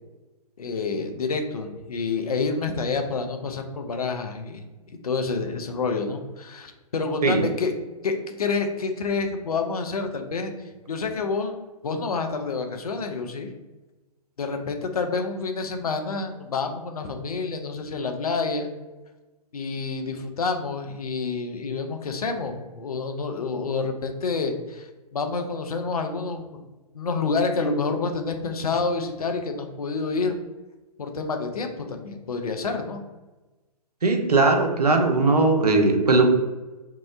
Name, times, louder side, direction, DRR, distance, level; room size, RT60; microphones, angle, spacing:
voice 1, 0.6-7.7 8.0-10.5 10.9-11.5 11.8-13.5 14.4-18.7 19.5-26.6 26.9-30.4 31.0-33.0, left 4 dB, 65° left, 5 dB, 0.4 m, -28 dB
voice 2, 34.0-36.3, right 3 dB, 75° right, 4 dB, 0.5 m, -19 dB
2.7 x 2.0 x 2.4 m, 1.1 s
figure-of-eight pair, 120°, 20 cm